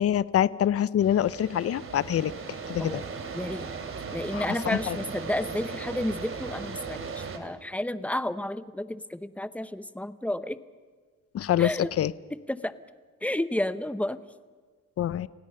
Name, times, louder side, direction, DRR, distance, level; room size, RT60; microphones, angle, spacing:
voice 1, 0.0-3.0 4.3-5.0 11.3-12.1 15.0-15.3, left 10 dB, 50° left, 19 dB, 0.7 m, -26 dB
sound 1, 1.0-7.4, right 5 dB, 45° right, 2.7 m, -37 dB
voice 2, 3.3-3.7 4.1-10.6 11.6-11.9 12.3-12.7 13.2-14.2, left 1 dB, 5° left, 14 dB, 0.8 m, -31 dB
30.0 x 17.0 x 5.5 m, 1.5 s
cardioid pair, 90°, 30 cm